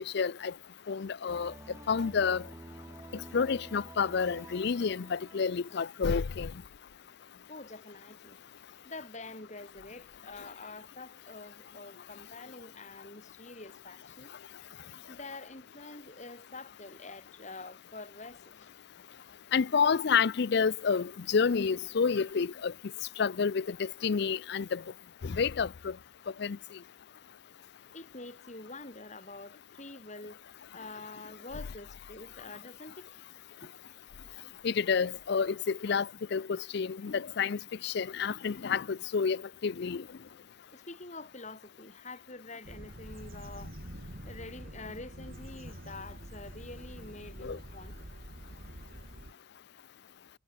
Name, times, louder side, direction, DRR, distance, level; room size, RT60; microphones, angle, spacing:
voice 1, 0.1-0.5 0.9-1.5 1.9-2.5 3.1-6.5 19.5-22.7 23.2-24.8 25.2-26.0 26.4-26.6 34.6-40.0 47.4-47.6, left 6 dB, 55° left, 0.5 m, -29 dB
sound 1, 1.3-6.7, right 1 dB, 15° right, 0.6 m, -50 dB
voice 2, 7.5-8.4 8.8-14.3 15.1-18.7 27.9-33.1 33.6-34.0 40.7-48.1, left 2 dB, 35° left, 4.5 m, -47 dB
sound 2, 42.6-49.3, right 1 dB, 45° right, 3.8 m, -46 dB
head